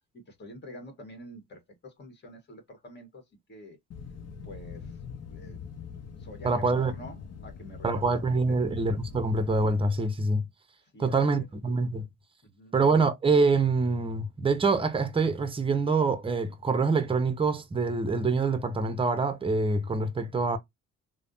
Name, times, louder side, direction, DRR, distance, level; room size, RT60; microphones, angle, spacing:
voice 1, 0.3-3.2 3.5-3.8 4.4-5.6 6.2-8.0 8.5-8.6 10.9-11.5 12.4-12.7, equal, 35° left, 1.5 m, -47 dB
sound 1, 3.9-9.9, left 6 dB, 55° left, 0.7 m, -43 dB
voice 2, 6.4-6.9 7.8-10.4 11.0-12.1 12.7-20.6, right 3 dB, 20° right, 0.7 m, -25 dB
3.2 x 2.2 x 2.5 m
cardioid pair, 90°, 30 cm